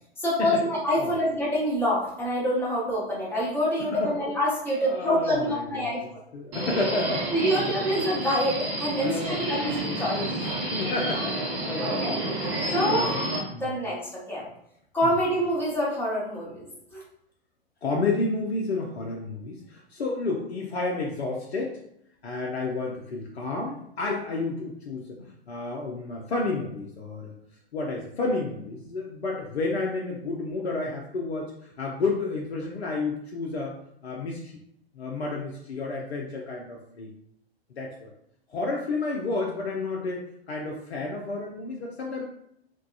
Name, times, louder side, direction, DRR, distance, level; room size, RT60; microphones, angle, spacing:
voice 1, 0.2-6.0 7.3-10.3 11.8-12.1 12.7-13.1 13.6-14.4 14.9-17.0, equal, 5° left, -7 dB, 1.0 m, -26 dB
voice 2, 3.8-4.1 4.8-7.9 9.0-9.7 10.6-12.2 12.6-13.2 13.5-13.7 15.0-15.1 17.8-21.8 22.2-27.3 27.7-34.6 34.9-37.1 37.8-38.1 38.5-42.2, left 3 dB, 75° left, -1 dB, 0.5 m, -31 dB
Subway metro underground, 6.5-13.4, right 1 dB, 35° right, 0.8 m, -30 dB
3.4 x 2.2 x 2.3 m, 0.75 s
figure-of-eight pair, 105°, 32 cm